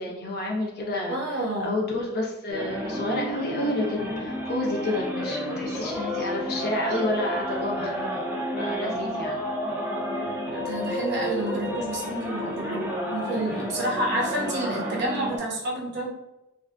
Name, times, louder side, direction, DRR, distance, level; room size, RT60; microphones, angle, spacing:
voice 1, 0.0-8.3 8.6-9.4, left 1 dB, 45° left, -2 dB, 0.6 m, -30 dB
voice 2, 1.1-1.7 5.7-5.8 6.2-6.3 6.9-7.0 10.5-16.1, right 1 dB, 50° right, -2 dB, 0.7 m, -30 dB
sound 1, 2.5-15.4, equal, 10° right, 0.4 m, -31 dB
2.5 x 2.1 x 2.4 m, 0.94 s
head